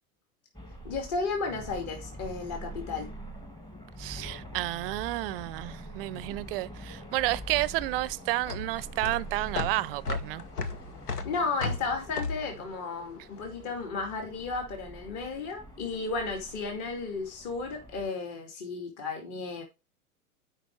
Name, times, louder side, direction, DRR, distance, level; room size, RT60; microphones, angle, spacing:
sound 1, 0.5-18.1, right 1 dB, 10° left, 1.3 m, -45 dB
voice 1, 0.8-3.1 11.2-19.6, left 4 dB, 40° left, 2.4 m, -34 dB
voice 2, 4.0-10.4, right 18 dB, 40° right, 0.5 m, -31 dB
sound 2, 7.1-13.7, left 4 dB, 85° left, 1.1 m, -36 dB
8.6 x 5.2 x 4.5 m
hypercardioid pair, 100°, 45 cm